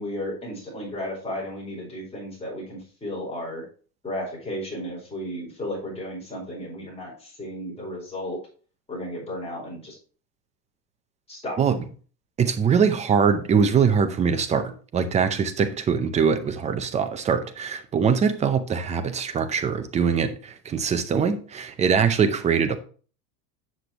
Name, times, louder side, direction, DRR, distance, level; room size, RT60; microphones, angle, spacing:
voice 1, 0.0-3.6 4.0-8.4 8.9-10.0 11.3-11.6, left 1 dB, 10° left, 4.4 m, -34 dB
voice 2, 12.4-22.8, right 6 dB, 15° right, 0.6 m, -22 dB
8.1 x 6.9 x 3.0 m
supercardioid pair, 130°, 50 cm